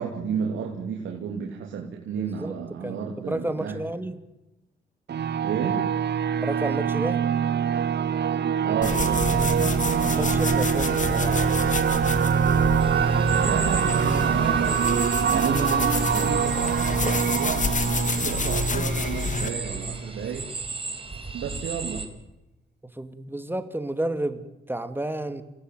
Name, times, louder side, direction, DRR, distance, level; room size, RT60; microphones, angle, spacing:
voice 1, 0.0-3.8 5.4-5.9 8.6-10.1 13.2-20.5 21.3-22.1, right 7 dB, 80° right, 0 dB, 3.2 m, -32 dB
voice 2, 2.8-4.2 6.4-7.2 10.0-11.4 22.9-25.4, right 1 dB, 10° right, 10 dB, 2.8 m, -31 dB
sound 1, 5.1-20.4, right 8 dB, 60° right, 1.2 m, -24 dB
sound 2, 8.8-19.5, left 3 dB, 40° left, 2.3 m, -28 dB
sound 3, 12.8-22.1, right 3 dB, 25° right, 4.5 m, -36 dB
27.5 x 18.5 x 9.5 m, 1.0 s
cardioid pair, 65°, 20 cm